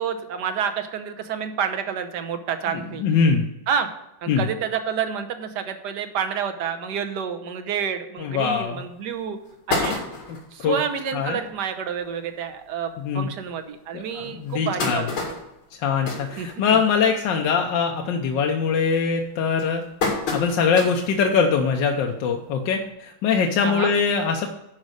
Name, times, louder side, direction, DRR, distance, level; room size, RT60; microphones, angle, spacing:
voice 1, 0.0-3.0 3.7-3.9 4.2-9.4 9.7-10.0 10.5-15.4 16.4-16.5 23.6-23.9, right 7 dB, 65° right, 7 dB, 1.4 m, -29 dB
voice 2, 2.7-3.4 4.3-4.4 8.2-8.8 10.6-10.8 11.1-11.4 13.0-13.3 13.9-15.0 15.8-19.8 20.3-24.5, left 6 dB, 70° left, 2 dB, 1.4 m, -22 dB
sound 1, 8.6-8.7 9.1-9.2 9.5-10.5 11.1-11.2 11.5-11.6 11.9-12.1 12.8-12.9 13.4-13.5 14.2-17.1 17.4-17.8 18.1-18.5 19.1-21.2 21.6-21.7 22.9-23.0, left 3 dB, 90° left, 3.1 m, -29 dB
10.5 x 5.1 x 6.4 m, 0.91 s
omnidirectional pair, 2.2 m